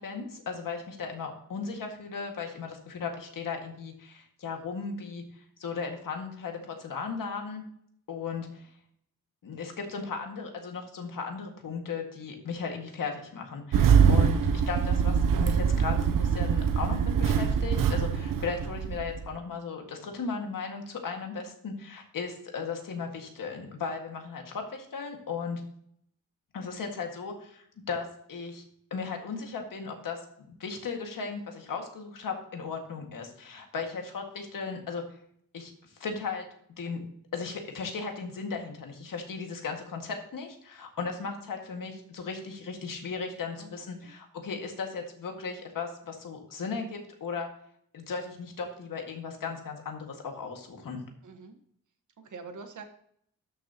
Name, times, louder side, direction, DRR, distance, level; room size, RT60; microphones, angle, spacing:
voice 1, 0.0-7.6 8.1-8.7 9.4-25.6 26.5-28.6 28.9-35.0 35.5-36.5 36.8-37.0 37.3-47.5 47.9-51.0, left 5 dB, 85° left, 3 dB, 1.9 m, -36 dB
Engine starting, 13.7-19.3, right 7 dB, 80° right, 0.7 m, -24 dB
voice 2, 51.2-51.6 52.2-52.8, right 4 dB, 65° right, 6 dB, 1.3 m, -45 dB
12.5 x 6.4 x 2.9 m, 0.67 s
wide cardioid pair, 160°, 32 cm